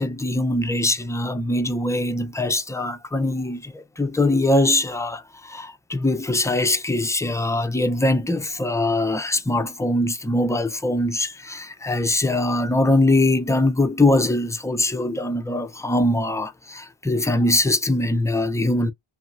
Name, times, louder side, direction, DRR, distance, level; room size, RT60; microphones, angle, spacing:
voice 1, 0.0-18.9, left 2 dB, 5° left, 0.3 m, -22 dB
2.7 x 2.6 x 2.3 m
cardioid pair, 60°, 50 cm